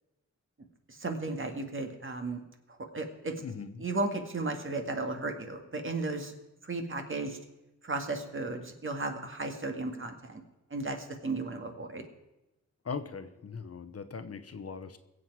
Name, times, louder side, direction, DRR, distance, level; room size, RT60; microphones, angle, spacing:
voice 1, 0.9-2.4 2.7-3.3 3.8-6.3 6.6-7.4 7.8-10.4 10.7-12.0, right 2 dB, 40° right, 4 dB, 2.0 m, -35 dB
voice 2, 3.4-3.8 12.8-15.0, left 5 dB, 50° left, 10 dB, 1.0 m, -40 dB
22.0 x 7.9 x 4.7 m, 0.98 s
wide cardioid pair, 95°, 30 cm